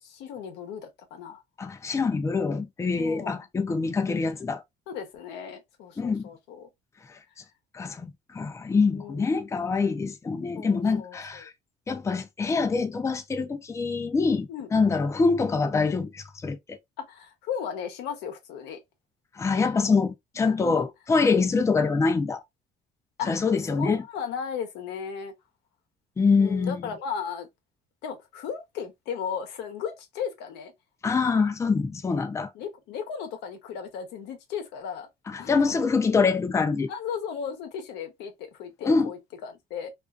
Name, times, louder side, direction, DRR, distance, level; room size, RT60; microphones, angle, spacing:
voice 1, 0.0-1.4 2.9-3.4 4.9-6.7 8.9-9.3 10.6-11.5 14.5-14.7 17.0-18.8 20.6-20.9 23.2-23.3 23.7-25.3 26.4-27.5 28.0-30.7 32.5-35.1 35.4-35.9 36.9-39.9, left 7 dB, 90° left, 0.7 m, -35 dB
voice 2, 1.6-4.6 6.0-6.3 7.1-7.2 7.7-11.5 11.9-16.8 19.3-22.4 23.3-24.0 26.2-26.9 31.0-32.5 35.3-36.9 38.8-39.1, left 4 dB, 15° left, 0.4 m, -25 dB
2.4 x 2.4 x 2.3 m
cardioid pair, 110°, 17 cm